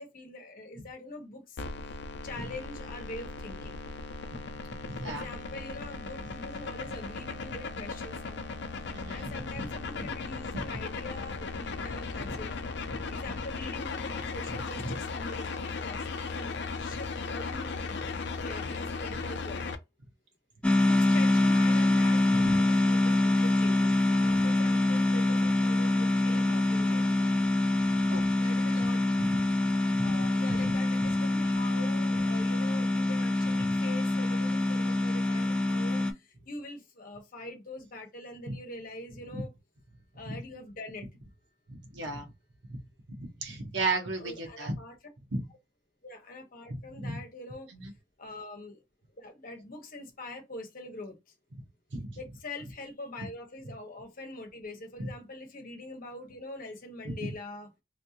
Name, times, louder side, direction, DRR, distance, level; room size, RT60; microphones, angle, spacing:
voice 1, 0.0-1.6 2.2-3.8 5.0-8.4 9.1-12.6 13.1-16.5 16.8-19.7 20.8-23.2 23.4-27.1 28.4-29.0 30.0-39.5 40.1-41.1 44.2-44.9 46.0-47.7 48.2-48.8 49.2-51.2 52.1-57.7, left 2 dB, 50° left, 1.0 m, -44 dB
sound 1, 1.6-19.7, left 4 dB, 65° left, 0.5 m, -37 dB
voice 2, 4.8-5.3 8.9-9.7 10.0-10.1 10.5-10.6 13.3-13.4 14.8-14.9 22.3-22.6 27.8-28.3 29.3-29.4 29.9-30.3 30.6-30.7 33.6-33.7 38.5-38.6 39.3-39.4 40.3-40.4 41.7-42.3 42.7-42.8 43.1-44.8 45.3-45.4 46.9-47.2 47.7-47.9 51.9-52.2 55.0-55.1 57.0-57.3, right 2 dB, 75° right, 1.1 m, -35 dB
sound 2, 20.6-36.1, left 2 dB, 5° left, 0.4 m, -25 dB
3.2 x 2.7 x 2.7 m
head